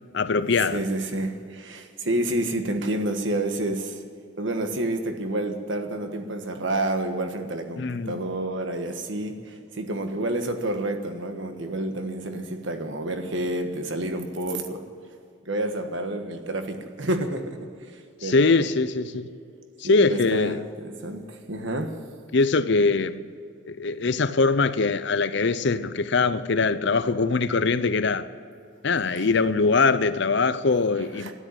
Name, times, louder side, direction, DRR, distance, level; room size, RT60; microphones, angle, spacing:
voice 1, 0.1-0.8 7.8-8.2 18.2-19.3 19.8-20.6 22.3-23.3 23.6-28.3 28.8-31.3, left 4 dB, 55° left, 0.6 m, -22 dB
voice 2, 0.7-4.0 4.4-14.8 15.5-17.6 18.2-18.6 19.8-21.9 29.1-29.3 31.2-31.3, right 1 dB, 65° right, 1.4 m, -29 dB
12.5 x 10.5 x 9.9 m
head